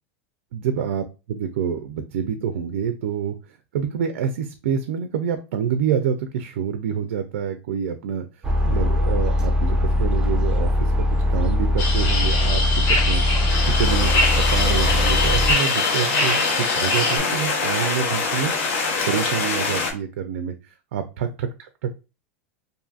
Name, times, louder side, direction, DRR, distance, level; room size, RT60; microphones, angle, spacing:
voice 1, 0.5-3.3 3.7-8.2 8.6-13.2 13.7-14.1 14.5-18.5 19.1-20.5 20.9-21.9, right 8 dB, 85° right, 8 dB, 0.3 m, -27 dB
sound 1, 8.4-15.5, left 1 dB, 10° right, 0.4 m, -21 dB
sound 2, 11.8-17.2, left 2 dB, 45° left, 0.8 m, -24 dB
sound 3, 13.5-19.9, left 4 dB, 70° left, 0.8 m, -24 dB
2.6 x 2.5 x 2.3 m, 0.30 s
supercardioid pair, 150°, 7 cm